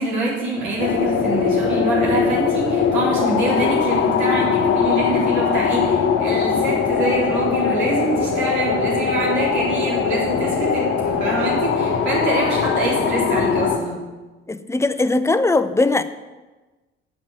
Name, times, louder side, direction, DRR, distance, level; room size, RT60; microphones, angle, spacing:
voice 1, 0.0-14.0, right 2 dB, 65° right, -6 dB, 4.0 m, -25 dB
sound 1, 0.8-13.8, left 6 dB, 50° left, 1.2 m, -21 dB
voice 2, 14.5-16.0, left 2 dB, 10° left, 12 dB, 0.6 m, -19 dB
7.7 x 7.3 x 7.5 m, 1.2 s
figure-of-eight pair, 45°, 30 cm